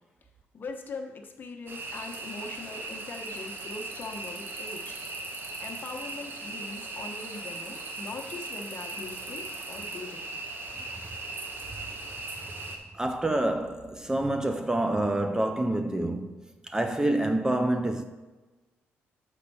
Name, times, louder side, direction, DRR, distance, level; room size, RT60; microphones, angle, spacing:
voice 1, 0.5-5.0 5.6-10.4, left 3 dB, 45° left, 1.0 m, -41 dB
sound 1, 1.7-12.8, right 2 dB, 50° right, 1.1 m, -38 dB
voice 2, 12.9-18.0, right 1 dB, 15° right, 0.5 m, -27 dB
6.6 x 4.5 x 5.4 m
cardioid pair, 85°, 5 cm